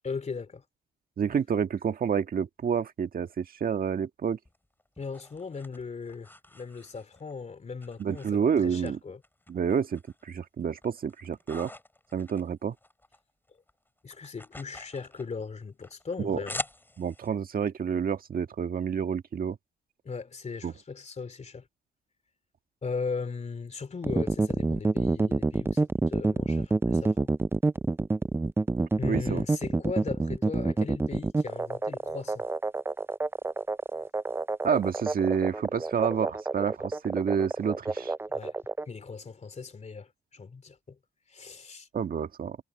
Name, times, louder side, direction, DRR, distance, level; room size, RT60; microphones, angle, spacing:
voice 1, 0.0-0.6 5.0-9.2 14.0-16.6 20.0-21.7 22.8-27.3 29.0-32.4 38.3-38.6 38.9-41.0 41.3-41.9, left 4 dB, 35° left, 3.1 m, -38 dB
voice 2, 1.2-4.4 8.0-9.0 9.5-11.7 12.1-12.7 16.2-16.4 17.0-19.6 20.6-20.7 29.0-29.4 34.6-38.1 41.9-42.6, right 7 dB, 45° right, 1.6 m, -29 dB
sound 1, 4.4-7.3 7.8-8.9 9.2-10.2 10.6-13.2 13.5-17.3, left 1 dB, 10° left, 3.5 m, -44 dB
sound 2, 24.0-38.8, right 3 dB, 10° right, 0.4 m, -27 dB
cardioid pair, 90°, 20 cm